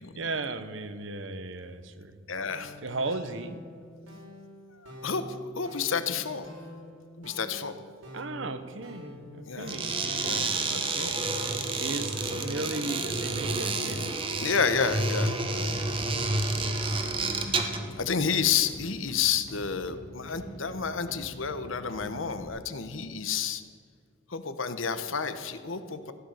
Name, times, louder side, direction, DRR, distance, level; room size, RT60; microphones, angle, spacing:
voice 1, 0.0-2.2 2.6-3.6 8.1-14.1, right 3 dB, 70° right, 11 dB, 1.0 m, -36 dB
voice 2, 2.3-2.8 4.7-6.5 7.2-7.8 9.5-9.7 10.2-10.5 11.0-11.1 14.4-15.8 17.4-23.6 24.3-26.1, left 6 dB, 80° left, 10 dB, 1.0 m, -30 dB
sound 1, 2.5-15.0, equal, 85° right, 4.4 m, -45 dB
sound 2, 9.6-17.9, right 3 dB, 25° right, 1.1 m, -30 dB
sound 3, 15.5-22.5, right 1 dB, 50° left, 2.3 m, -46 dB
15.5 x 10.5 x 6.6 m, 2.1 s
head